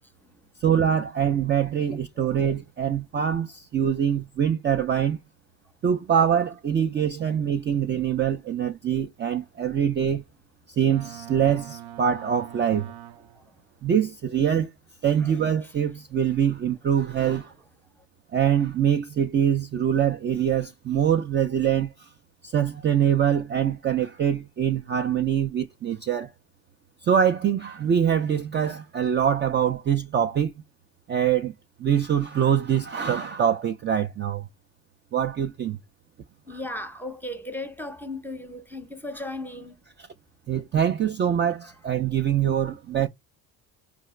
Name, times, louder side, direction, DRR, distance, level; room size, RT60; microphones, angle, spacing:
voice 1, 0.0-0.5 2.1-2.2 13.3-13.6 15.2-15.4 15.6-15.7 18.0-18.1 36.4-39.8 41.6-41.8, left 1 dB, 5° left, 0.7 m, -37 dB
voice 2, 0.6-5.2 5.8-10.2 10.7-12.9 13.8-14.7 15.0-17.5 18.3-22.1 22.4-26.3 27.0-30.5 31.1-31.5 31.8-34.5 35.1-35.8 36.5-36.7 40.5-43.1, right 8 dB, 30° right, 0.4 m, -24 dB
Boat Water vehicle, 10.9-13.6, right 11 dB, 85° right, 0.7 m, -43 dB
4.7 x 2.4 x 3.1 m
cardioid pair, 115°, 38 cm